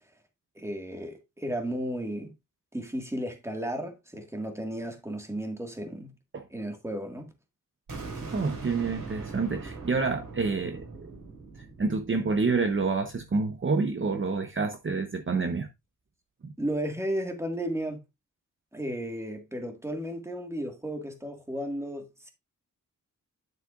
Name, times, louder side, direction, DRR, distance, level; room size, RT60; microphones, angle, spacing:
voice 1, 0.5-2.3 2.7-6.1 6.5-7.3 16.6-18.0 18.7-22.3, right 1 dB, 10° right, 1.8 m, -34 dB
sound 1, 7.9-13.7, right 3 dB, 70° right, 5.2 m, -41 dB
voice 2, 8.3-10.9 11.8-15.7 16.4-16.5, right 4 dB, 40° right, 0.8 m, -28 dB
10.0 x 7.5 x 2.4 m
wide cardioid pair, 150°, 31 cm